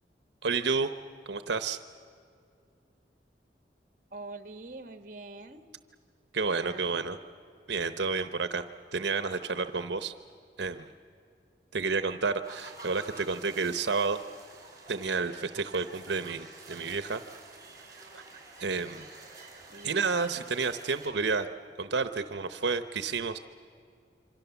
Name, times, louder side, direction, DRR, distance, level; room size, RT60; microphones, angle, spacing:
voice 1, 0.4-0.9 1.3-1.8 6.3-7.2 7.7-8.6 8.9-10.1 10.6-10.9 11.7-14.2 14.9-17.2 18.1-18.2 18.6-19.1 19.8-21.5 21.8-23.4, right 4 dB, 85° right, 10 dB, 0.9 m, -30 dB
voice 2, 4.1-5.7 6.6-7.0 19.7-20.1, right 2 dB, 45° right, 9 dB, 1.4 m, -44 dB
sound 1, 12.4-21.1, right 3 dB, 20° right, 5.1 m, -50 dB
27.0 x 25.0 x 7.1 m, 2.4 s
head